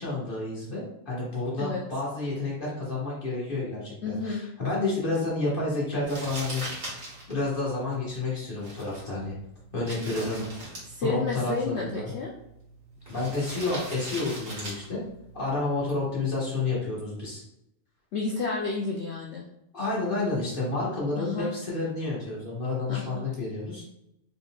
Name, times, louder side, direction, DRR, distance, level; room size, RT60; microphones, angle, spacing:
voice 1, 0.0-9.3 9.7-10.4 11.0-12.1 13.1-15.0 15.3-17.4 19.7-23.8, left 3 dB, 40° left, -6 dB, 1.5 m, -30 dB
voice 2, 4.0-4.4 10.8-12.3 18.1-19.5 21.2-21.5 22.9-23.2, left 3 dB, 60° left, -2 dB, 0.8 m, -31 dB
Crumpling crinkling, 6.0-16.2, right 1 dB, 75° right, 2.2 m, -42 dB
4.5 x 4.0 x 2.3 m, 0.82 s
omnidirectional pair, 1.5 m